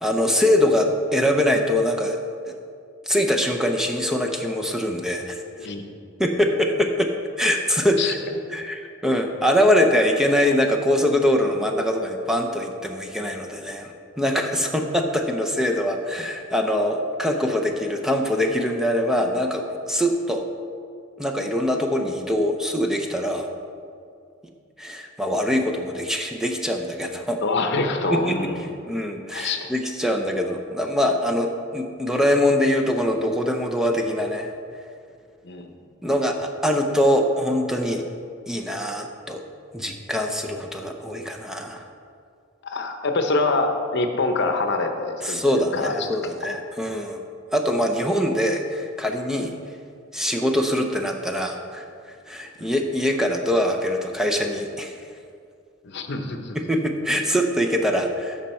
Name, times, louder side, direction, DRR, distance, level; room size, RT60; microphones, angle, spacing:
voice 1, 0.0-2.2 2.4-2.5 3.1-5.4 6.2-8.2 8.5-20.5 21.2-23.5 24.8-27.4 28.1-28.5 28.9-34.5 36.0-38.0 38.5-39.4 39.7-41.8 45.2-47.2 47.5-49.5 50.1-55.0 56.5-58.4, equal, 5° right, 2 dB, 0.5 m, -23 dB
voice 2, 5.6-5.9 8.0-8.1 27.4-28.7 29.3-29.7 35.4-35.7 42.6-46.1 52.6-52.7 55.8-56.6, left 3 dB, 60° left, 6 dB, 0.8 m, -25 dB
13.0 x 5.3 x 4.3 m, 2.3 s
head